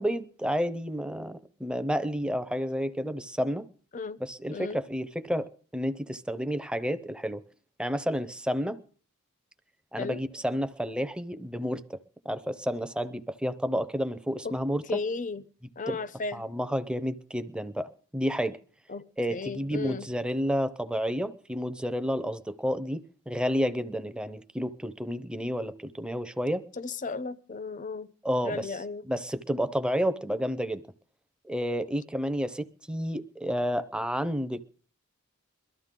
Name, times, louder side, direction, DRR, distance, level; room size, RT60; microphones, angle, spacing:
voice 1, 0.0-3.6 4.2-7.4 7.8-8.8 9.9-12.0 12.2-15.0 15.9-16.0 16.3-18.6 19.2-26.6 28.2-28.7 29.0-30.8 31.5-34.6, equal, 5° right, 0.7 m, -30 dB
voice 2, 14.9-15.4 15.8-16.5 18.9-20.1 26.7-28.1 28.4-29.1, left 4 dB, 35° left, 0.7 m, -35 dB
22.5 x 13.5 x 3.7 m
head